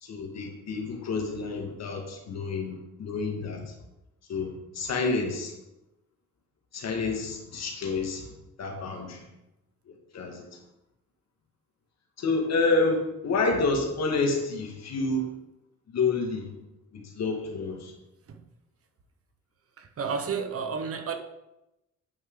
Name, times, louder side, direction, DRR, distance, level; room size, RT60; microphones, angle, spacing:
voice 1, 0.0-3.7 4.3-5.5 6.7-8.3 8.6-9.2 9.9-10.5 12.2-15.3 15.9-16.5 16.9-17.9, left 3 dB, 60° left, 2 dB, 1.9 m, -29 dB
voice 2, 19.8-21.2, right 6 dB, 50° right, 6 dB, 1.0 m, -31 dB
9.3 x 5.5 x 3.8 m, 0.91 s
cardioid pair, 90°, 30 cm